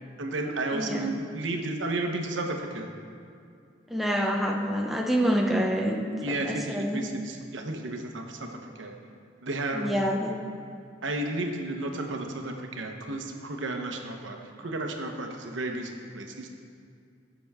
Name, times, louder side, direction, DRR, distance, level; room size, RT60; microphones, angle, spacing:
voice 1, 0.2-2.9 6.2-8.9 9.4-9.9 11.0-16.5, right 2 dB, 85° right, 3 dB, 0.9 m, -33 dB
voice 2, 0.7-1.1 3.9-6.0 6.4-7.0 9.7-10.3, equal, ahead, 0 dB, 0.6 m, -26 dB
15.5 x 6.1 x 3.5 m, 2.3 s
head